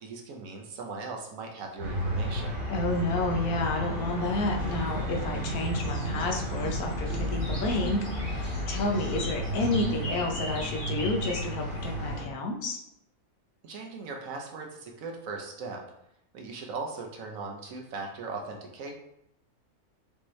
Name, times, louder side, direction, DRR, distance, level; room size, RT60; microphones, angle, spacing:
voice 1, 0.0-2.6 13.6-15.8 16.3-18.9, right 4 dB, 70° right, 1 dB, 1.1 m, -39 dB
sound 1, 1.8-12.2, equal, 40° right, 1.3 m, -32 dB
voice 2, 2.7-12.8, left 2 dB, 85° left, 1 dB, 1.3 m, -30 dB
sound 2, 4.2-12.2, left 1 dB, 60° left, 1.9 m, -43 dB
5.3 x 2.9 x 3.1 m, 0.78 s
omnidirectional pair, 1.6 m